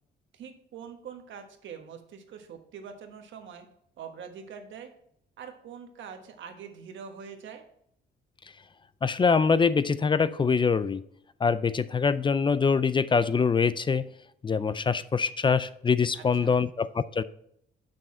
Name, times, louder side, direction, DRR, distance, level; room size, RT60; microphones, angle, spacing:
voice 1, 0.3-3.7 4.0-4.9 5.4-7.6 16.1-16.6, right 7 dB, 70° right, 5 dB, 1.3 m, -44 dB
voice 2, 9.0-11.0 11.4-14.1 14.4-17.2, left 5 dB, 25° left, 16 dB, 0.4 m, -24 dB
6.9 x 6.2 x 4.3 m, 0.70 s
cardioid pair, 90°, 20 cm